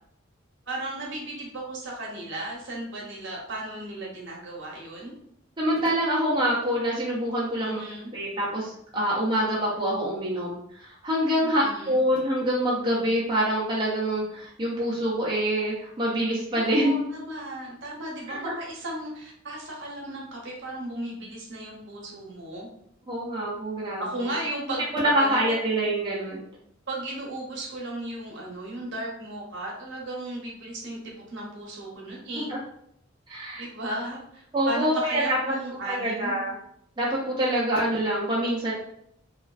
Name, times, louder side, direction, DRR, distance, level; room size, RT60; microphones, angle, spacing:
voice 1, 0.7-5.1 7.6-8.1 11.4-12.0 16.5-22.7 24.0-24.8 25.2-25.6 26.9-32.5 33.6-36.4, right 1 dB, 60° right, -3 dB, 0.7 m, -35 dB
voice 2, 5.6-7.8 8.1-16.9 18.3-18.5 23.1-24.0 24.9-26.4 32.5-32.6 33.3-33.6 34.5-35.6 35.9-36.5 37.0-38.7, right 1 dB, 20° right, -6 dB, 0.5 m, -25 dB
2.4 x 2.3 x 2.3 m, 0.70 s
head